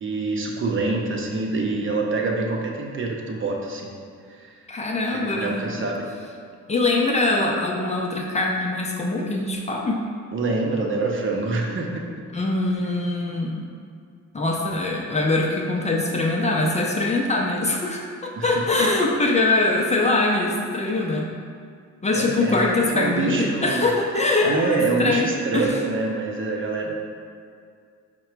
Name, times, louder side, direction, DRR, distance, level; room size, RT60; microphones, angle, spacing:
voice 1, 0.0-3.9 4.4-4.5 5.1-6.1 10.3-12.2 18.4-18.5 22.1-23.9 24.4-26.9, right 3 dB, 40° right, 0 dB, 0.7 m, -26 dB
voice 2, 4.7-5.7 6.7-10.0 12.3-13.6 14.3-21.3 22.0-25.8, left 2 dB, 25° left, -1 dB, 0.5 m, -23 dB
4.7 x 2.2 x 4.5 m, 2.2 s
cardioid pair, 90°, 30 cm